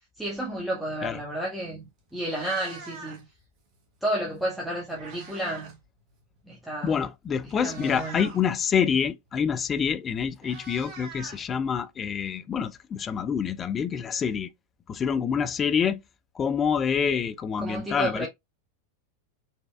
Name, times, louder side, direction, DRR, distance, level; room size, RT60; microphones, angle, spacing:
voice 1, 0.2-3.2 4.0-5.7 6.5-7.0 7.6-8.2 17.6-18.3, right 1 dB, 5° right, 1.0 m, -31 dB
Meow, 1.6-1.8 2.1-3.4 4.5-5.8 6.1-6.4 7.1-7.2 7.5-8.4 9.7-9.8 10.1-12.0, right 4 dB, 45° right, 1.3 m, -44 dB
voice 2, 6.8-14.5 14.9-16.0 16.4-18.3, left 7 dB, 25° left, 0.4 m, -27 dB
4.1 x 3.3 x 2.2 m
figure-of-eight pair, 90°, 0 cm